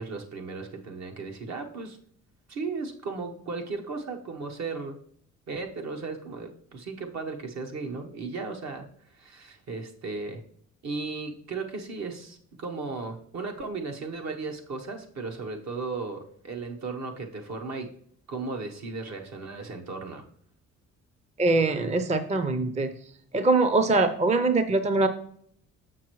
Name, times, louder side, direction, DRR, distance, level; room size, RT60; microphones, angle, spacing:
voice 1, 0.0-2.0 2.5-5.0 5.5-8.8 9.1-10.4 10.8-17.9 18.3-20.2, right 4 dB, 60° right, 3 dB, 1.1 m, -35 dB
voice 2, 21.4-22.9 23.3-25.1, right 3 dB, 25° right, 9 dB, 0.5 m, -23 dB
6.7 x 5.9 x 3.1 m, 0.62 s
cardioid pair, 90°, 30 cm